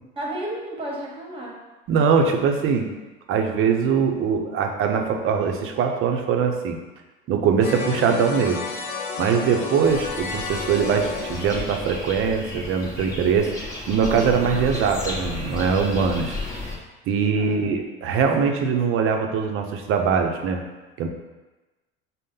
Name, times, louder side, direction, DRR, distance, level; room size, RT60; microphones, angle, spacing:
voice 1, 0.2-1.6 9.5-9.7 17.3-18.1, right 1 dB, 20° right, -2 dB, 1.2 m, -33 dB
voice 2, 1.9-2.9 3.3-6.8 7.3-8.6 9.2-16.4 17.1-20.6 21.0-21.1, right 6 dB, 45° right, 4 dB, 0.6 m, -22 dB
sound 1, 7.6-12.5, left 5 dB, 60° left, 0.8 m, -32 dB
sound 2, 9.8-16.8, left 2 dB, 10° left, 1.0 m, -33 dB
5.1 x 2.1 x 3.7 m, 1.2 s
supercardioid pair, 100°, 29 cm